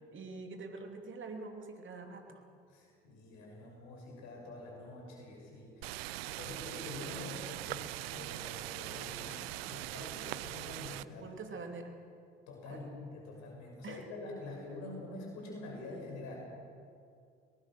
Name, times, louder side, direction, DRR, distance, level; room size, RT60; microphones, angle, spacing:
voice 1, 0.1-2.4 11.2-11.9 12.7-12.8 13.8-14.0, right 3 dB, 40° right, 4 dB, 2.9 m, -45 dB
voice 2, 2.7-11.4 12.5-16.4, left 2 dB, 65° left, 0 dB, 6.2 m, -46 dB
sound 1, 5.8-11.0, right 17 dB, 80° right, 0.5 m, -41 dB
24.5 x 19.5 x 6.3 m, 2.4 s
hypercardioid pair, 55°, 30 cm